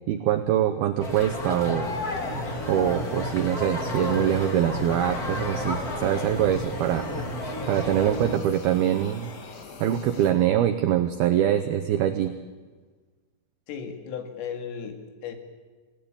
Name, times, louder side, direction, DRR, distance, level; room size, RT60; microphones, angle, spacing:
voice 1, 0.1-1.9 2.7-7.1 7.7-9.3 9.8-12.3, right 11 dB, 85° right, 7 dB, 2.2 m, -24 dB
sound 1, 1.0-8.3, left 1 dB, 35° left, 1.6 m, -31 dB
sound 2, 1.8-10.3, left 4 dB, 65° left, 5.0 m, -43 dB
voice 2, 13.7-15.4, left 7 dB, 85° left, 5 dB, 4.9 m, -35 dB
28.0 x 18.0 x 8.8 m, 1.4 s
omnidirectional pair, 5.7 m